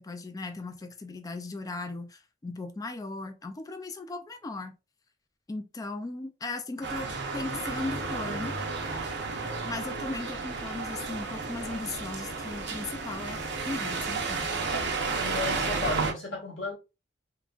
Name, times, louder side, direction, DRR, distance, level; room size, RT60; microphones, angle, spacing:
voice 1, 0.0-4.7 5.5-8.6 9.6-14.5, left 2 dB, 20° left, 0.3 m, -37 dB
sound 1, 6.8-16.1, right 4 dB, 65° right, 0.7 m, -32 dB
voice 2, 15.2-16.7, left 2 dB, 90° left, 1.5 m, -33 dB
3.6 x 2.2 x 2.4 m
head